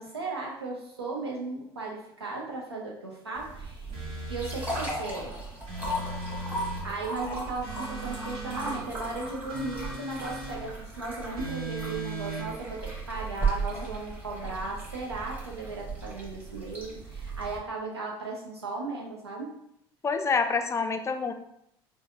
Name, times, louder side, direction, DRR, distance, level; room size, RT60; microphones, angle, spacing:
voice 1, 0.0-3.9 4.3-5.3 6.8-19.5, right 3 dB, 90° right, -1 dB, 0.7 m, -36 dB
sound 1, 3.4-17.6, right 3 dB, 10° right, 1.2 m, -36 dB
sound 2, 3.9-4.9 5.7-6.9 7.6-8.8 9.5-10.6 11.4-12.5, right 2 dB, 45° right, 1.3 m, -38 dB
voice 2, 20.0-21.3, left 5 dB, 20° left, 7 dB, 0.4 m, -27 dB
4.7 x 2.1 x 2.6 m, 0.77 s
figure-of-eight pair, 65°, 13 cm